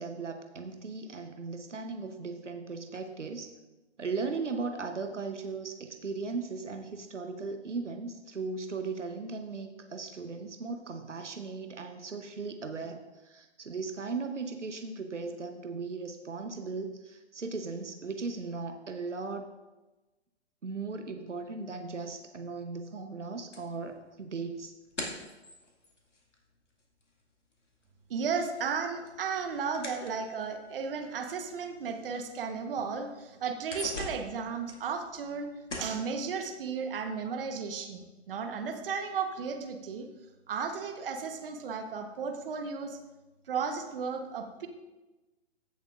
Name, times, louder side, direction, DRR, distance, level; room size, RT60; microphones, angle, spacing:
voice 1, 0.0-3.5 4.0-19.5 20.6-24.7, right 4 dB, 85° right, 6 dB, 1.0 m, -37 dB
sound 1, 23.5-27.2 27.5-30.7 31.4-31.5 32.0-32.1 32.5-33.0 33.4-35.4 35.7-36.1, left 2 dB, 85° left, 2.1 m, -43 dB
voice 2, 28.1-35.5 35.8-40.1 40.5-43.0 43.5-44.7, right 5 dB, 50° right, 5 dB, 1.1 m, -34 dB
15.0 x 7.1 x 2.5 m, 1.1 s
figure-of-eight pair, 125°, 35 cm